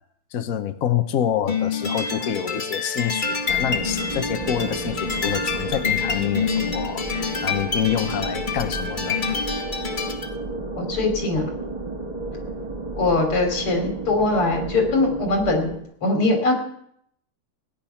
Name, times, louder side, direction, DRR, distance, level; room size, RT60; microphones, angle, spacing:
voice 1, 0.3-9.2, left 9 dB, 60° left, 0.9 m, -27 dB
sound 1, 1.5-10.3, left 5 dB, 25° left, 1.2 m, -27 dB
sound 2, 3.5-15.8, right 2 dB, 20° right, 1.8 m, -32 dB
voice 2, 10.7-11.6 12.9-15.7 16.0-16.6, left 2 dB, 85° left, 4.2 m, -21 dB
17.5 x 10.5 x 5.8 m
omnidirectional pair, 2.4 m